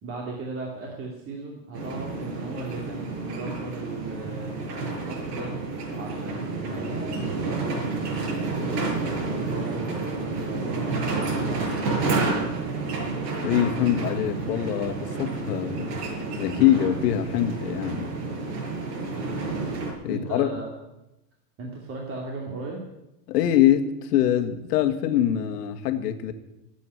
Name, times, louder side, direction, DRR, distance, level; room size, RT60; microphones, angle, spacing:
voice 1, 0.0-4.5 4.9-5.5 5.9-12.6 19.1-19.4 20.1-20.8 21.6-22.8, right 3 dB, 25° right, -1 dB, 2.7 m, -37 dB
sound 1, 1.7-19.9, right 3 dB, 75° right, 6.0 m, -30 dB
voice 2, 13.4-16.0 16.4-18.1 20.0-20.5 23.3-26.3, left 11 dB, 75° left, 7 dB, 1.8 m, -23 dB
16.0 x 8.5 x 9.7 m, 0.90 s
supercardioid pair, 140°, 49 cm